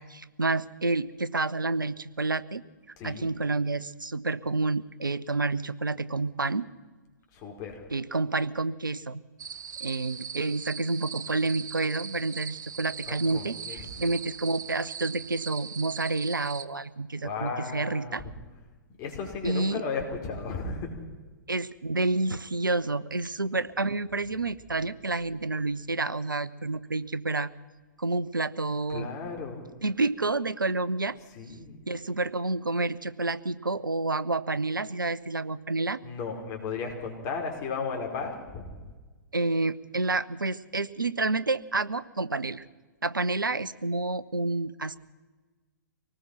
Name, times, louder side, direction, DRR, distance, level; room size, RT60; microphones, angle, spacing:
voice 1, 0.0-2.6 3.0-6.7 7.9-9.2 9.8-18.2 19.4-19.8 21.5-27.5 28.0-29.1 29.8-31.2 31.9-36.0 39.3-42.6 43.0-45.0, right 3 dB, 90° right, 18 dB, 0.8 m, -29 dB
voice 2, 3.0-3.3 7.3-7.8 13.0-13.9 17.2-18.3 19.0-21.0 28.9-29.6 31.3-31.8 36.0-38.8, left 5 dB, 35° left, 2 dB, 5.0 m, -35 dB
sound 1, 9.4-16.7, right 7 dB, 65° right, 1.1 m, -40 dB
25.0 x 19.0 x 5.9 m, 1.3 s
figure-of-eight pair, 115°, 11 cm